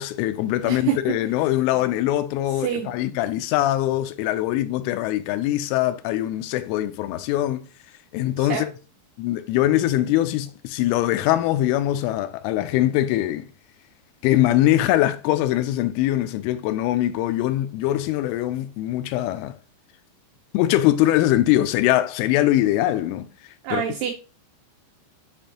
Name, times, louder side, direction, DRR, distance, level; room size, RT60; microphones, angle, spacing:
voice 1, 0.0-7.7 8.1-8.7 9.2-13.5 14.2-19.6 20.5-23.3 23.7-23.8, left 14 dB, 85° left, 3.2 m, -22 dB
voice 2, 0.6-1.2 1.8-1.9 2.6-2.9 8.4-8.7 23.6-24.1, right 9 dB, 90° right, 2.4 m, -27 dB
7.4 x 5.2 x 2.9 m
omnidirectional pair, 5.5 m